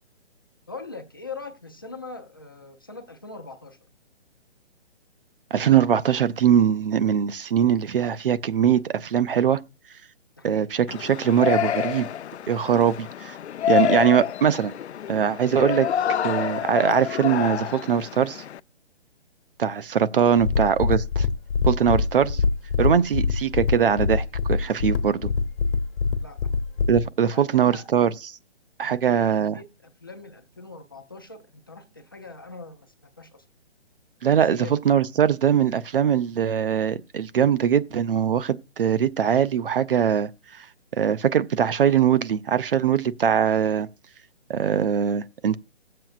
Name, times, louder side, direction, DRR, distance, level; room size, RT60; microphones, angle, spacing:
voice 1, 0.7-3.8 10.4-10.7 20.0-20.3 26.2-26.4 27.3-27.9 28.8-29.7 30.0-33.4 34.5-35.0, left 3 dB, 20° left, 0.4 m, -41 dB
voice 2, 5.5-9.6 10.4-12.1 12.5-13.4 13.7-14.7 15.1-18.4 19.6-21.3 21.7-22.4 22.8-25.3 26.9-28.3 28.8-29.6 34.2-40.3 40.6-40.7 40.9-43.9 44.5-45.6, right 8 dB, 55° right, 0.6 m, -22 dB
Yell, 10.9-18.6, left 10 dB, 80° left, 0.5 m, -27 dB
sound 1, 20.4-27.1, left 5 dB, 60° left, 1.1 m, -24 dB
17.5 x 7.6 x 2.4 m
hypercardioid pair, 160°, 33 cm